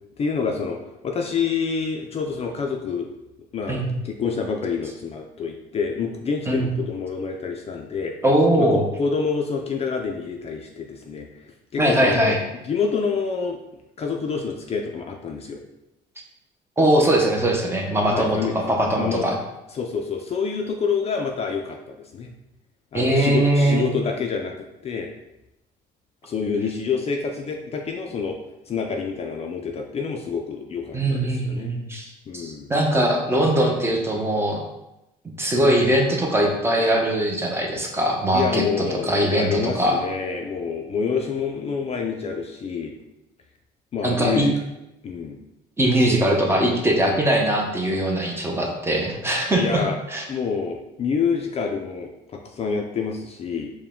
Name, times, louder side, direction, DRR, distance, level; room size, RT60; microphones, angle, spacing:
voice 1, 0.2-0.8 1.0-3.1 3.5-8.1 8.6-11.3 11.7-12.4 12.6-13.6 14.0-15.6 18.1-18.7 19.0-19.3 19.7-22.3 22.9-24.5 24.8-25.1 26.2-28.4 28.7-31.7 32.3-32.7 38.3-42.9 43.9-44.5 45.0-45.4 48.2-48.4 49.6-50.0 50.3-53.7, left 5 dB, 40° left, 2 dB, 0.4 m, -27 dB
voice 2, 8.2-8.8 11.8-12.4 16.8-19.4 22.9-23.9 30.9-32.1 32.3-34.6 35.4-40.0 44.0-44.5 45.8-49.8 50.1-50.2, right 1 dB, 15° right, 1 dB, 0.7 m, -21 dB
4.6 x 2.2 x 3.6 m, 0.92 s
cardioid pair, 110°, 17 cm